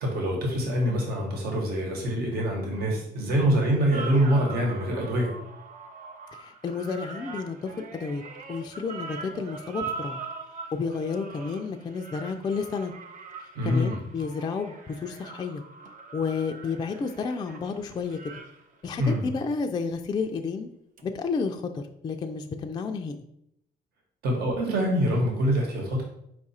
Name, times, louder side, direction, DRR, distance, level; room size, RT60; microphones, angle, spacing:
voice 1, 0.0-5.3 13.5-14.0 19.0-19.2 24.2-26.0, equal, 65° right, 0 dB, 1.2 m, -25 dB
sound 1, 3.9-19.5 21.0-21.1, right 4 dB, 50° right, 0.6 m, -42 dB
voice 2, 6.3-8.2 8.5-10.2 10.7-12.9 13.4-15.6 16.1-18.2 18.8-20.7 21.0-23.2, left 5 dB, 25° left, 4 dB, 0.3 m, -31 dB
4.8 x 2.4 x 4.1 m, 0.76 s
cardioid pair, 110°, 17 cm